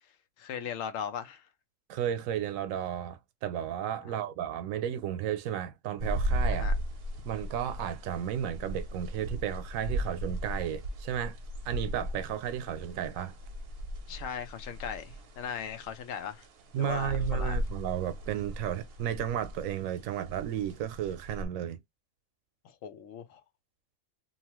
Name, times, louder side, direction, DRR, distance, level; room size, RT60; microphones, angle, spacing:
voice 1, 0.4-1.4 4.0-4.1 6.5-6.8 14.1-16.5 16.8-17.6 22.8-23.4, left 8 dB, 80° left, 1.0 m, -38 dB
voice 2, 1.9-6.7 7.2-11.4 11.7-13.4 16.7-21.8, right 10 dB, 90° right, 1.0 m, -33 dB
sound 1, 6.0-21.5, equal, 55° right, 0.7 m, -36 dB
2.8 x 2.3 x 2.9 m
omnidirectional pair, 1.4 m